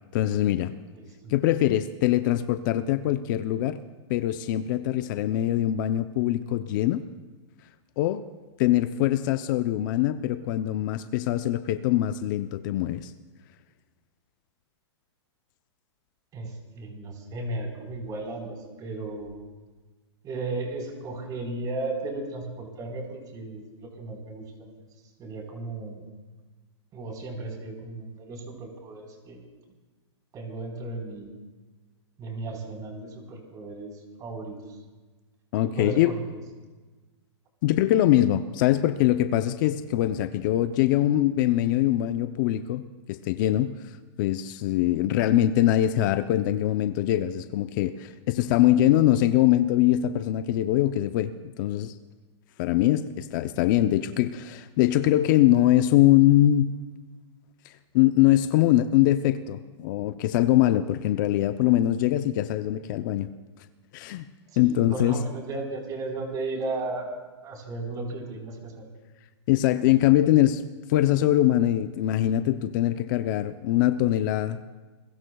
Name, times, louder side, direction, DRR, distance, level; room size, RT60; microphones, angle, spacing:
voice 1, 0.1-0.7 1.3-3.8 4.1-7.0 8.0-8.2 8.6-13.1 35.5-36.1 37.6-43.7 44.2-51.9 52.6-56.8 57.7-63.3 63.9-64.3 64.6-65.2 69.5-70.6 70.9-74.6, left 13 dB, 45° left, 10 dB, 0.6 m, -23 dB
voice 2, 0.9-1.3 16.3-19.3 20.2-24.5 25.2-26.1 26.9-29.4 30.3-31.3 32.2-34.8 35.6-36.4 64.6-68.8, right 2 dB, 25° right, 1 dB, 4.2 m, -35 dB
28.0 x 22.0 x 2.3 m, 1.3 s
hypercardioid pair, 140°, 15 cm